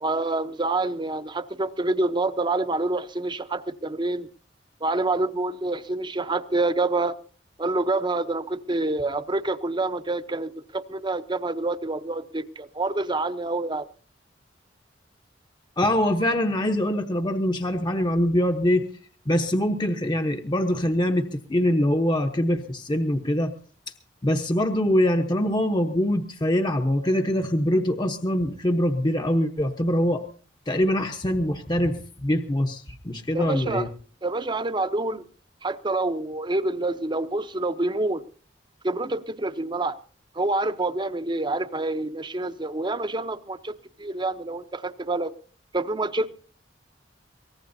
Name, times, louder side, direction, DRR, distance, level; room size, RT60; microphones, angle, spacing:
voice 1, 0.0-4.3 4.8-7.2 7.6-13.9 33.3-33.9 34.2-35.2 35.6-38.2 38.8-40.0 40.3-43.7 44.0-45.3 45.7-46.3, right 2 dB, 25° right, 0.8 m, -27 dB
voice 2, 15.8-18.8 19.3-23.5 24.2-30.2 30.7-33.9, left 1 dB, 25° left, 0.9 m, -23 dB
23.5 x 18.5 x 2.7 m
head